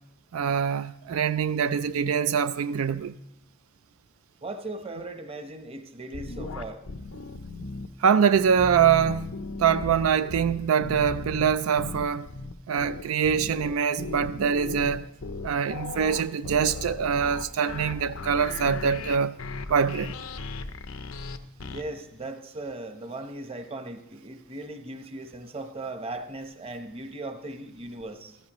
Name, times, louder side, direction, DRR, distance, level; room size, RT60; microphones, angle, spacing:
voice 1, 0.3-3.1 8.0-9.3 9.6-12.3 12.7-15.1 15.4-19.3 19.7-20.1, right 7 dB, 85° right, 0.4 m, -24 dB
voice 2, 4.4-6.8 21.7-28.4, right 2 dB, 30° right, 0.9 m, -38 dB
sound 1, 6.1-7.9 8.3-21.8, left 3 dB, 85° left, 0.7 m, -36 dB
14.5 x 14.0 x 3.0 m
head